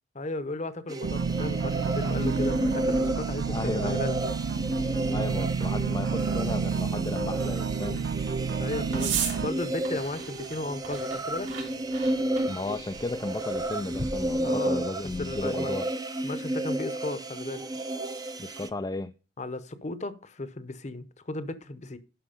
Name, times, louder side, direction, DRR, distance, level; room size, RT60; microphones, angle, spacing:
voice 1, 0.1-4.2 8.6-11.5 14.4-14.8 15.2-15.8 16.2-17.7 19.4-22.0, left 2 dB, 40° left, 0.9 m, -35 dB
sound 1, 0.9-18.7, right 1 dB, 20° right, 0.6 m, -32 dB
sound 2, 1.0-9.5, right 5 dB, 60° right, 0.3 m, -30 dB
voice 2, 3.5-4.0 5.1-8.1 12.5-15.9 18.4-19.1, left 2 dB, 20° left, 0.4 m, -34 dB
sound 3, 4.5-15.5, right 5 dB, 80° right, 3.8 m, -40 dB
11.5 x 4.6 x 5.1 m
head